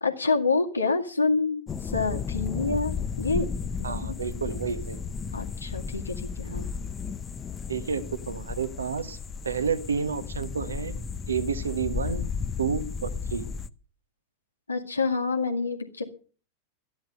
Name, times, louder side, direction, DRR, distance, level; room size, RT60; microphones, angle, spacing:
voice 1, 0.0-3.5 3.8-4.4 4.7-4.8 5.3-6.7 14.7-16.0, left 4 dB, 80° left, 3 dB, 2.1 m, -27 dB
sound 1, 1.7-13.7, left 6 dB, 20° left, 0.7 m, -34 dB
voice 2, 3.8-5.0 7.7-9.2 9.4-10.9 11.3-12.2 12.6-13.4, right 6 dB, 70° right, 11 dB, 1.4 m, -30 dB
13.5 x 10.0 x 6.6 m, 0.39 s
figure-of-eight pair, 90°, 0 cm